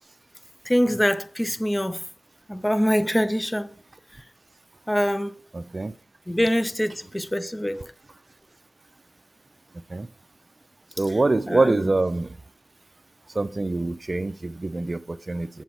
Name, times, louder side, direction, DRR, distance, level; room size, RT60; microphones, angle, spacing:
voice 1, 0.7-2.0 2.5-3.7 4.9-5.3 6.3-7.9 11.1-11.2 11.5-11.9, equal, 15° left, 0.9 m, -24 dB
voice 2, 5.5-5.9 9.9-10.1 11.0-12.3 13.4-15.5, right 2 dB, 40° right, 0.6 m, -24 dB
7.4 x 7.0 x 4.4 m
cardioid pair, 45°, 0 cm